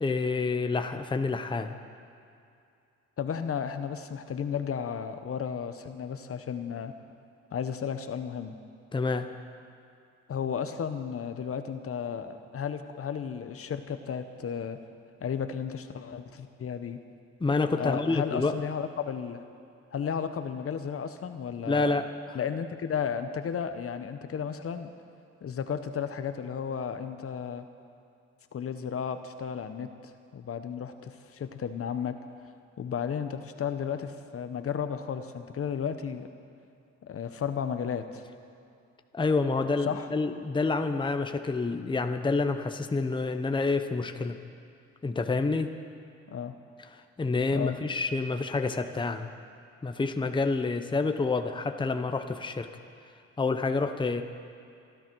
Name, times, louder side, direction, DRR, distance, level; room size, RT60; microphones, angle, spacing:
voice 1, 0.0-1.8 8.9-9.3 17.4-18.6 21.7-22.4 39.1-44.4 45.0-45.7 47.2-49.3 49.8-52.7 53.4-54.2, left 3 dB, 15° left, 7 dB, 0.8 m, -28 dB
voice 2, 3.2-6.9 7.5-8.6 10.3-14.8 15.2-17.0 17.7-19.4 19.9-21.9 22.3-24.9 25.4-27.7 28.5-32.2 32.8-36.3 37.0-38.2 39.8-40.1 46.3-46.6 47.5-47.8, left 7 dB, 50° left, 9 dB, 1.0 m, -33 dB
25.5 x 11.5 x 4.7 m, 2.5 s
cardioid pair, 90°, 30 cm